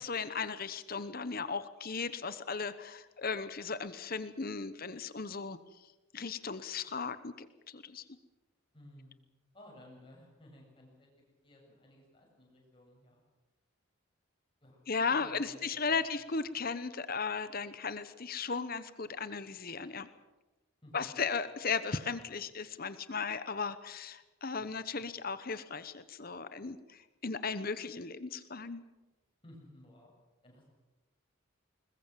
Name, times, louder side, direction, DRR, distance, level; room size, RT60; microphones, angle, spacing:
voice 1, 0.0-5.6 6.1-8.0 14.9-20.1 20.9-28.8, left 5 dB, 45° left, 13 dB, 1.0 m, -36 dB
voice 2, 8.7-9.1 9.5-13.2 14.6-16.1 20.8-21.0 29.4-30.1 30.4-30.7, left 1 dB, 25° left, -1 dB, 7.8 m, -57 dB
21.5 x 21.0 x 7.5 m, 1.1 s
head